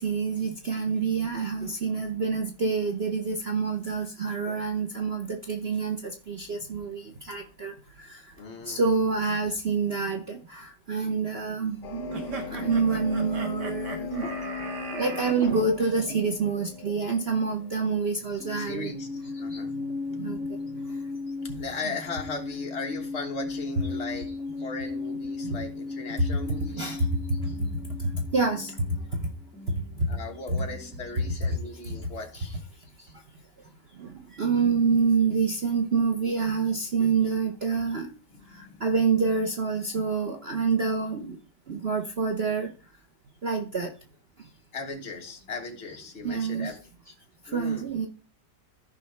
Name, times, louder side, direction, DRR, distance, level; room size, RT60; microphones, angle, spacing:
voice 1, 0.0-8.3 8.6-14.2 15.0-18.9 19.5-19.6 20.1-20.6 20.8-21.0 21.8-21.9 23.2-23.3 25.4-25.6 26.2-26.3 26.7-27.7 28.0-29.2 29.7-30.1 30.5-30.6 31.8-32.1 33.0-33.2 33.6-38.1 38.5-41.4 41.7-42.7 43.4-43.9 44.4-44.5 46.2-46.7 47.4-48.1, right 4 dB, 45° right, 4 dB, 0.9 m, -27 dB
voice 2, 8.4-8.9 14.2-14.4 14.9-15.6 16.9-17.0 18.5-19.7 21.6-24.3 24.6-26.9 30.1-32.5 38.3-38.9 44.7-46.8 47.5-47.9, left 3 dB, 40° left, 2 dB, 1.7 m, -38 dB
sound 1, 11.8-18.3, left 6 dB, 75° left, 1.5 m, -38 dB
sound 2, 12.1-15.4, right 3 dB, 75° right, 2.0 m, -38 dB
sound 3, 18.2-31.6, left 3 dB, 5° right, 2.1 m, -37 dB
14.0 x 5.3 x 3.3 m, 0.36 s
omnidirectional pair, 1.8 m